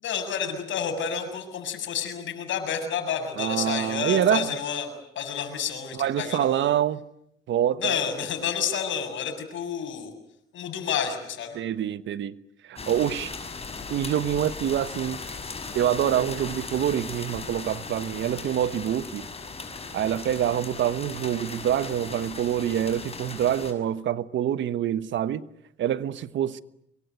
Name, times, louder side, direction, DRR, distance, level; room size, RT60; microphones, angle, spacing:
voice 1, 0.0-6.7 7.8-10.1 10.5-11.6, left 7 dB, 75° left, 7.2 m, -30 dB
voice 2, 3.4-4.5 5.9-7.0 7.5-8.0 11.5-12.4 12.7-13.3 13.9-15.2 15.7-19.3 19.9-25.4 25.8-26.6, right 10 dB, 70° right, 1.3 m, -26 dB
sound 1, 12.8-23.7, left 4 dB, 30° left, 6.1 m, -38 dB
25.5 x 24.0 x 9.5 m
cardioid pair, 90°, 20 cm